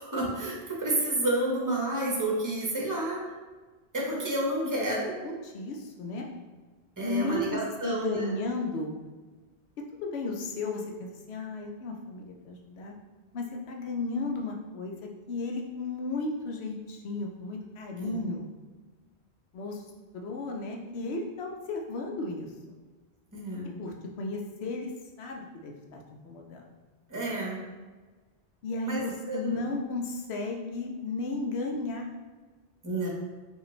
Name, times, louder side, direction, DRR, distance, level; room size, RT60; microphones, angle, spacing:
voice 1, 0.0-3.2 3.9-5.1 7.0-8.3 18.0-18.2 23.3-23.7 27.1-27.6 28.8-29.6 32.8-33.1, right 1 dB, 20° right, -3 dB, 0.8 m, -30 dB
voice 2, 4.6-4.9 5.2-6.3 7.0-9.0 10.0-12.9 13.3-14.9 15.3-18.5 19.5-19.8 20.1-22.8 23.8-24.9 25.2-26.6 28.6-32.1, left 3 dB, 75° left, 1 dB, 0.9 m, -34 dB
5.2 x 2.4 x 3.1 m, 1.3 s
omnidirectional pair, 1.1 m